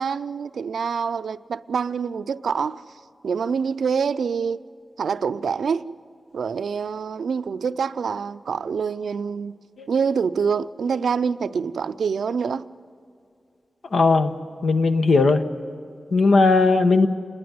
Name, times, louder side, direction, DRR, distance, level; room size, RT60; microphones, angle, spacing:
voice 1, 0.0-2.8 3.2-4.6 5.0-5.9 6.3-9.5 9.9-12.7, right 6 dB, 90° right, 0.4 m, -25 dB
voice 2, 13.9-14.4 14.6-15.4 16.1-17.1, left 3 dB, 80° left, 1.0 m, -17 dB
28.0 x 11.0 x 9.3 m
cardioid pair, 50°, 0 cm